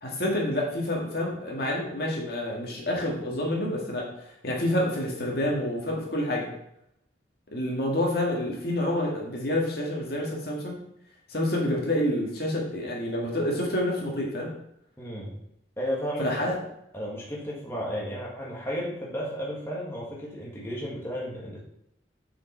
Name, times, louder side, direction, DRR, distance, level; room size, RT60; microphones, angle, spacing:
voice 1, 0.0-6.5 7.5-10.8 11.3-14.5 16.2-16.6, left 1 dB, 55° left, -2 dB, 1.7 m, -28 dB
voice 2, 15.0-15.4 15.8-16.5 16.9-21.6, equal, 10° left, -5 dB, 1.6 m, -33 dB
6.9 x 5.1 x 4.4 m, 0.77 s
head